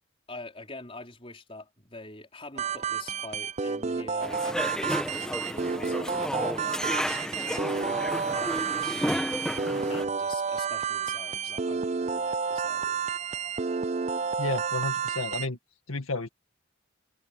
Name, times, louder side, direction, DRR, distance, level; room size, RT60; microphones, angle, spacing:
voice 1, 0.3-9.3 9.9-13.0, left 2 dB, 25° left, 4.5 m, -45 dB
sound 1, 2.6-15.5, right 6 dB, 30° right, 0.4 m, -31 dB
sound 2, 4.2-10.0, equal, 5° left, 1.4 m, -32 dB
voice 2, 14.4-15.6 15.9-16.3, left 3 dB, 80° left, 2.0 m, -31 dB
head